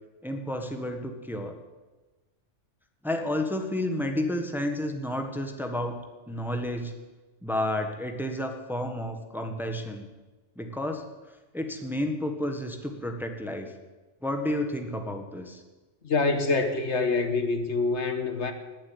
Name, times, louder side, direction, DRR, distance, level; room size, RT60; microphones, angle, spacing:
voice 1, 0.2-1.6 3.0-6.0 6.3-6.9 7.4-10.1 10.6-11.0 11.5-13.7 14.2-15.6, left 1 dB, ahead, 5 dB, 1.4 m, -31 dB
voice 2, 16.0-18.5, left 3 dB, 65° left, 7 dB, 1.6 m, -26 dB
19.0 x 7.6 x 9.6 m, 1.2 s
omnidirectional pair, 1.3 m